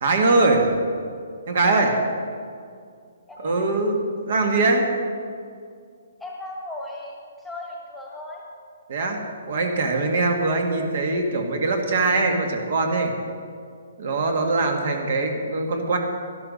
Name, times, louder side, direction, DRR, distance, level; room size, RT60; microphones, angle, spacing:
voice 1, 0.0-0.7 1.5-1.9 3.4-4.9 8.9-9.2 9.5-13.1 14.0-16.0, right 3 dB, 55° right, 3 dB, 1.7 m, -22 dB
voice 2, 3.3-3.6 6.2-8.4, left 1 dB, ahead, -3 dB, 1.5 m, -36 dB
12.5 x 11.5 x 5.4 m, 2.3 s
hypercardioid pair, 165°, 0 cm